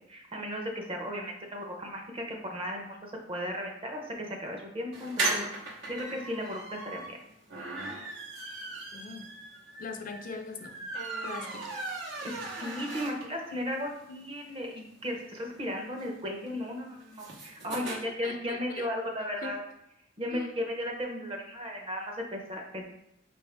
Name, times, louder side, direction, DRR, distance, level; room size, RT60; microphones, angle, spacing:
voice 1, 0.1-5.4 5.9-7.2 12.2-19.6 20.2-22.8, equal, 30° right, 1 dB, 0.7 m, -35 dB
sound 1, 4.9-13.5 13.9-14.0 14.2-14.3 14.6-18.0, right 2 dB, 75° right, 1.0 m, -37 dB
voice 2, 8.9-9.3 9.8-10.8 11.2-11.8 17.7-18.9 19.4-19.6 20.3-20.6, left 4 dB, 50° left, 6 dB, 0.5 m, -41 dB
4.8 x 2.6 x 3.4 m, 0.84 s
head